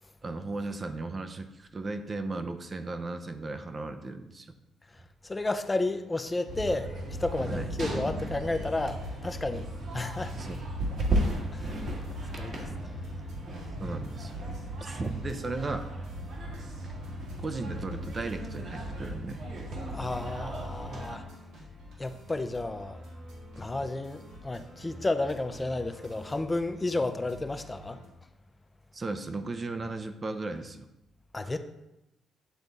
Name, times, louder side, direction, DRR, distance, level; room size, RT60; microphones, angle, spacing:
voice 1, 0.2-4.5 7.5-7.7 10.4-10.6 13.8-14.3 14.8-15.9 17.4-19.4 28.9-30.9 31.4-31.6, right 3 dB, 35° right, 0.6 m, -36 dB
voice 2, 4.9-6.9 7.2-10.5 11.0-14.0 16.4-16.6 19.9-21.2 22.0-23.0 23.6-28.0 31.3-31.6, left 2 dB, 20° left, 0.5 m, -33 dB
sound 1, 6.5-21.2, right 1 dB, 65° right, 1.7 m, -35 dB
sound 2, 8.7-28.1, left 1 dB, 85° right, 1.8 m, -48 dB
9.1 x 3.5 x 4.0 m
cardioid pair, 90°, 0 cm